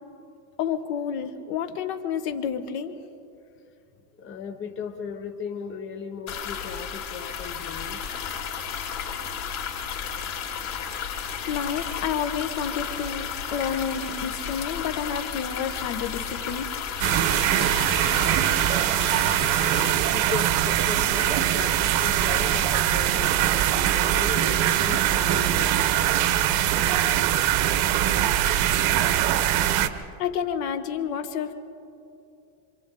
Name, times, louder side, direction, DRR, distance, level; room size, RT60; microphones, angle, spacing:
voice 1, 0.6-2.9 11.5-16.7 30.2-31.5, left 7 dB, 65° left, 8 dB, 1.7 m, -30 dB
voice 2, 4.2-8.1 19.4-19.5 20.1-26.3, left 6 dB, 25° left, 5 dB, 1.0 m, -37 dB
sound 1, 6.3-19.9, left 7 dB, 85° left, 4.6 m, -33 dB
sound 2, 17.0-29.9, right 12 dB, 60° right, 1.2 m, -22 dB
27.0 x 26.0 x 3.9 m, 2.7 s
cardioid pair, 155°, 50 cm